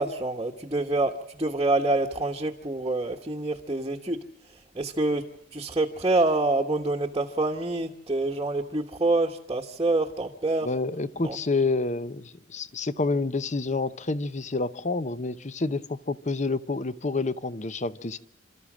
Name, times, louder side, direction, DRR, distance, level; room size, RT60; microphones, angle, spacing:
voice 1, 0.0-4.2 4.7-10.7 11.2-11.4, right 2 dB, 20° right, 0 dB, 1.2 m, -26 dB
voice 2, 10.6-18.2, left 3 dB, 40° left, 15 dB, 0.7 m, -28 dB
29.0 x 13.5 x 7.3 m, 0.82 s
head